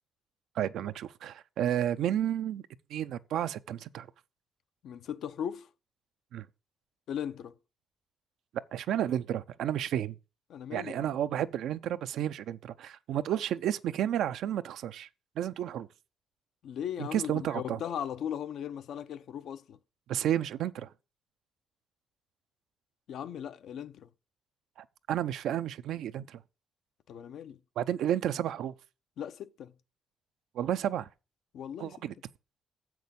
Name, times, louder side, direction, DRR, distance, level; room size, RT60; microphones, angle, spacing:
voice 1, 0.6-2.6 2.9-4.1 6.3-6.5 8.7-10.1 10.7-15.1 15.4-15.9 17.0-17.8 20.1-20.9 25.1-26.4 27.8-28.7 30.5-31.1 31.8-32.1, right 11 dB, 80° right, 0.6 m, -31 dB
voice 2, 4.8-5.7 7.1-7.5 10.5-11.1 16.6-19.8 23.1-24.1 27.1-27.6 29.2-29.7 31.5-32.0, left 9 dB, 70° left, 0.7 m, -38 dB
7.4 x 6.1 x 6.9 m
cardioid pair, 90°, 0 cm